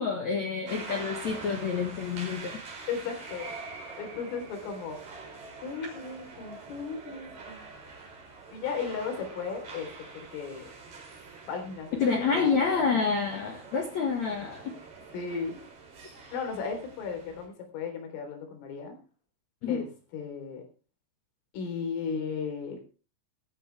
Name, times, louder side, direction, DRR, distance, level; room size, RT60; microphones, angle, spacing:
voice 1, 0.0-2.6 12.0-14.7 19.6-19.8, left 5 dB, 55° left, 3 dB, 2.0 m, -28 dB
sound 1, 0.7-17.5, right 4 dB, 45° right, 5.9 m, -45 dB
voice 2, 2.9-3.5 4.0-5.0 5.6-7.6 8.5-9.9 10.1-10.6 11.5-13.0 15.1-15.6 16.3-19.0 19.7-19.9 20.1-20.6 21.5-22.8, left 5 dB, 85° left, 5 dB, 6.2 m, -35 dB
16.0 x 14.0 x 3.4 m, 0.34 s
omnidirectional pair, 5.6 m